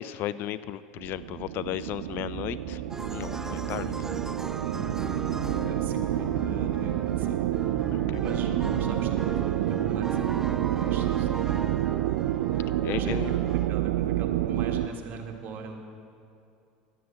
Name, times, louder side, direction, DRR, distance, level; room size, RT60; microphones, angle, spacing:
voice 1, 0.0-2.8 3.1-3.9 7.9-8.2 12.8-13.4, left 13 dB, 50° left, 16 dB, 0.4 m, -34 dB
sound 1, 1.0-14.9, right 13 dB, 75° right, 0.3 m, -28 dB
sound 2, 1.6-8.9, equal, 20° left, 1.0 m, -44 dB
sound 3, 2.9-13.7, right 2 dB, 10° right, 0.4 m, -39 dB
voice 2, 5.6-7.4 8.2-11.6 12.9-13.4 13.7-15.8, right 3 dB, 45° right, 3 dB, 1.6 m, -40 dB
11.0 x 7.6 x 7.1 m, 2.5 s
hypercardioid pair, 90°, 5 cm